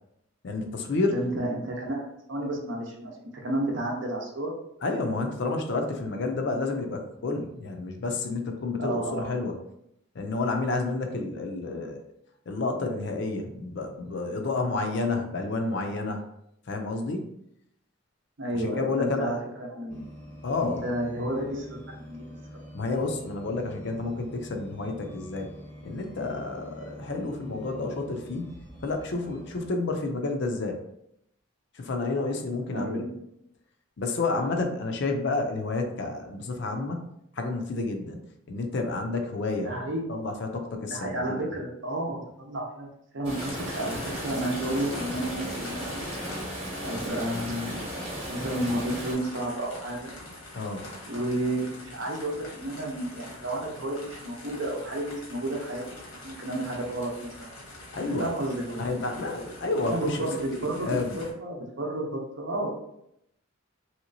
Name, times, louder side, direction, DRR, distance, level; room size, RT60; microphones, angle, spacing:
voice 1, 0.4-1.1 4.8-9.6 10.2-12.0 12.5-16.2 16.7-17.3 18.5-19.4 20.4-20.8 22.7-25.5 25.8-30.8 31.7-33.0 34.0-37.1 37.4-38.2 38.5-39.7 40.1-41.5 50.6-50.9 57.9-58.3 58.8-60.2 60.8-61.2, left 3 dB, 55° left, 4 dB, 0.4 m, -30 dB
voice 2, 1.1-3.2 3.4-4.5 8.8-9.4 18.4-20.1 20.6-22.3 32.7-33.2 39.6-40.2 40.9-42.9 43.1-46.1 46.8-47.8 48.3-50.1 51.1-55.8 56.2-57.5 58.2-58.9 59.8-62.7, right 1 dB, 60° right, 0 dB, 0.7 m, -31 dB
sound 1, 19.9-29.7, equal, 10° left, 0.7 m, -46 dB
sound 2, 43.2-49.1, right 1 dB, 25° right, 1.0 m, -35 dB
sound 3, 43.4-61.3, left 1 dB, 90° left, 1.0 m, -44 dB
3.1 x 2.9 x 2.6 m, 0.77 s
head